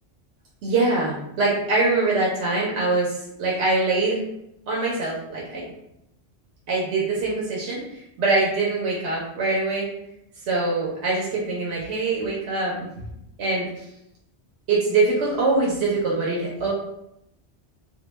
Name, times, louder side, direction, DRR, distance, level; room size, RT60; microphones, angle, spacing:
voice 1, 0.6-4.2 4.7-5.7 6.7-9.9 10.5-12.9 13.4-13.7 14.7-16.7, right 3 dB, 80° right, -4 dB, 0.9 m, -23 dB
2.2 x 2.1 x 3.0 m, 0.81 s
omnidirectional pair, 1.1 m